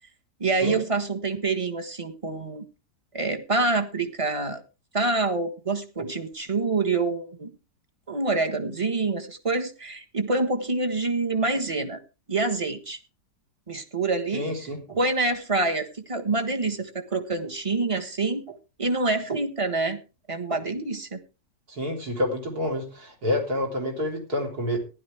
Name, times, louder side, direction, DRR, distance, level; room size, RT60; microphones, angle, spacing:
voice 1, 0.4-2.6 3.1-4.6 4.9-7.5 8.1-12.0 12.3-13.0 13.7-14.5 14.9-20.0 20.3-21.2, right 3 dB, 20° right, 6 dB, 1.3 m, -26 dB
voice 2, 14.3-14.8 21.7-24.8, left 1 dB, 60° right, 1 dB, 4.2 m, -28 dB
15.0 x 11.5 x 3.4 m, 0.30 s
omnidirectional pair, 1.8 m